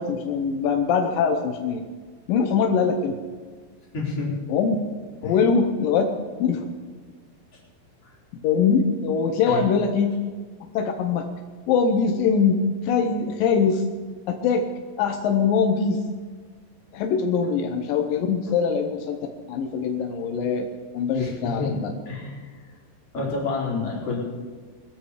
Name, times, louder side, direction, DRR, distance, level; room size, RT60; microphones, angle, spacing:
voice 1, 0.0-1.8 2.3-3.2 4.5-4.8 5.2-6.0 6.4-6.7 8.4-10.1 10.7-11.3 11.7-13.9 14.3-14.7 15.0-16.0 16.9-19.2 19.5-20.7 20.9-21.9, left 6 dB, 75° left, 4 dB, 2.1 m, -22 dB
voice 2, 3.9-4.3 5.2-5.5 9.5-9.6 21.1-21.7 22.1-22.5 23.1-24.2, left 4 dB, 35° left, -5 dB, 4.7 m, -29 dB
21.5 x 13.5 x 5.0 m, 1.5 s
omnidirectional pair, 5.1 m